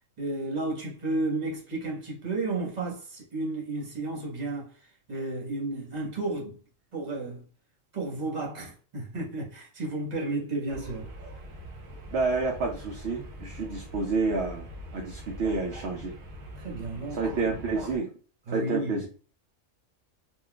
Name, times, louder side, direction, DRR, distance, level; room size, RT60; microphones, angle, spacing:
voice 1, 0.2-6.6 6.9-7.4 7.9-11.1 16.6-17.4 18.5-19.1, right 2 dB, 35° right, 1.1 m, -32 dB
sound 1, 10.7-18.0, equal, 90° right, 1.2 m, -43 dB
voice 2, 12.1-14.7 14.9-16.1 17.1-18.1 18.5-19.1, right 3 dB, 60° right, 0.8 m, -29 dB
3.7 x 2.5 x 2.3 m
omnidirectional pair, 1.3 m